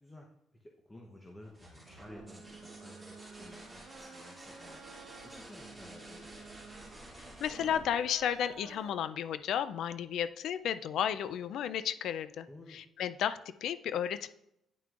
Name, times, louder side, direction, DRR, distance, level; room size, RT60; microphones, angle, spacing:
voice 1, 0.6-4.8 5.2-6.5 12.5-12.8, left 1 dB, 15° left, 1 dB, 0.8 m, -53 dB
sound 1, 1.4-9.0 10.8-11.3, right 1 dB, 5° right, 2.4 m, -51 dB
sound 2, 1.9-8.9, right 5 dB, 65° right, 0.7 m, -53 dB
voice 2, 7.4-14.3, left 9 dB, 75° left, 14 dB, 0.3 m, -33 dB
9.1 x 5.7 x 2.4 m, 0.81 s
cardioid pair, 90°, 0 cm